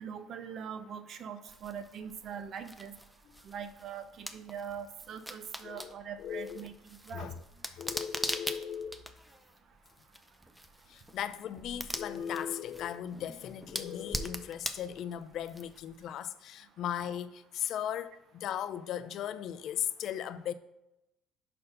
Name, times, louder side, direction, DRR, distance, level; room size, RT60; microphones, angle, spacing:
voice 1, 0.0-3.0 3.4-7.3, right 7 dB, 55° right, 0.7 m, -42 dB
sound 1, 1.5-16.0, equal, 5° right, 0.6 m, -43 dB
voice 2, 5.6-6.7 7.1-7.4 7.7-9.0 10.9-20.5, left 9 dB, 65° left, 0.4 m, -37 dB
5.4 x 4.3 x 5.3 m
supercardioid pair, 90°, 0 cm